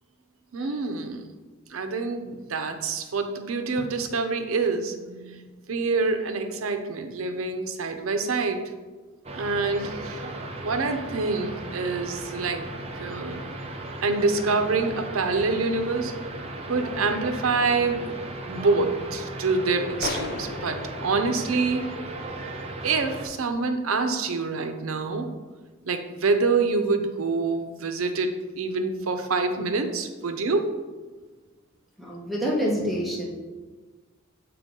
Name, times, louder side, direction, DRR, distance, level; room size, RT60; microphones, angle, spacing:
voice 1, 0.5-1.3 1.7-8.7 9.3-10.3 10.6-12.6 13.0-13.4 14.0-16.1 16.7-18.0 18.5-21.9 22.8-25.3 25.9-30.8, right 4 dB, 80° right, 7 dB, 0.6 m, -26 dB
sound 1, 9.2-23.3, right 2 dB, 30° right, 0.7 m, -36 dB
sound 2, 20.0-22.6, left 4 dB, 50° left, 0.4 m, -37 dB
voice 2, 32.0-33.3, equal, ahead, -4 dB, 1.1 m, -27 dB
6.8 x 4.6 x 3.7 m, 1.3 s
head